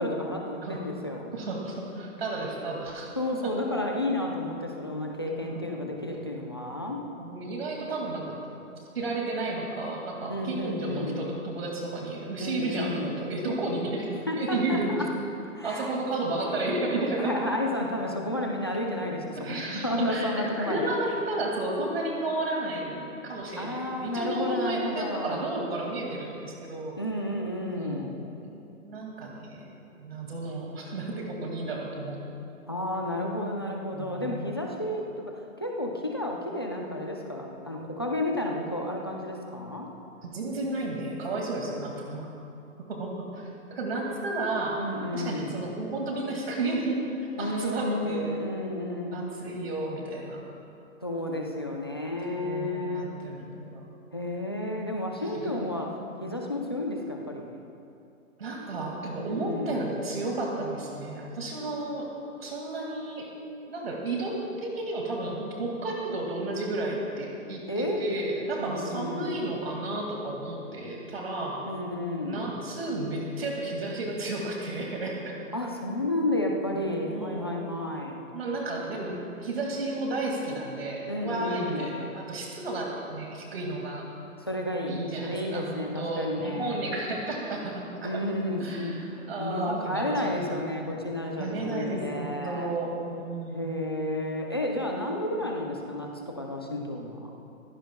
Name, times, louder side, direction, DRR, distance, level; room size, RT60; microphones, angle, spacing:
voice 1, 0.0-1.3 3.2-7.0 10.3-11.3 12.4-13.1 14.3-15.1 15.5-15.9 17.2-20.9 23.6-25.5 27.0-28.2 32.7-35.3 35.6-39.9 44.8-45.6 47.4-49.4 51.0-53.1 54.1-55.9 56.2-57.6 59.2-59.8 67.7-68.1 68.6-69.4 71.6-72.5 75.5-78.2 81.1-81.9 84.4-86.8 88.0-89.0 89.4-92.7 93.5-97.3, left 1 dB, 20° left, 0 dB, 0.5 m, -31 dB
voice 2, 1.3-3.2 3.4-3.5 7.2-8.4 8.9-14.9 15.6-17.3 19.3-20.3 20.6-27.0 27.7-28.1 28.4-32.2 33.9-34.3 40.2-42.3 42.9-44.8 45.1-47.0 47.4-48.3 49.1-50.5 52.3-53.8 55.1-55.5 58.4-62.1 62.4-63.3 63.7-71.7 72.2-75.4 77.1-77.5 78.3-84.1 84.9-88.2 88.6-90.5 91.4-93.8, right 2 dB, 45° right, -1 dB, 2.1 m, -32 dB
24.5 x 16.0 x 2.2 m, 2.7 s
hypercardioid pair, 175°, 41 cm